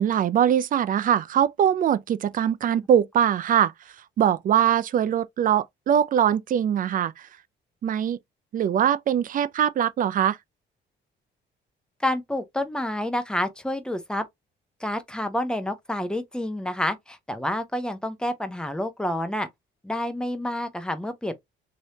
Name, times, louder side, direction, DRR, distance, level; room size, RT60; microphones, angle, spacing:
voice 1, 0.0-3.7 4.2-7.1 7.8-8.2 8.5-10.4, right 9 dB, 45° right, 0.4 m, -22 dB
voice 2, 12.0-14.2 14.8-19.5 19.8-21.3, left 1 dB, 5° left, 0.7 m, -28 dB
3.1 x 2.8 x 2.8 m
cardioid pair, 90°, 20 cm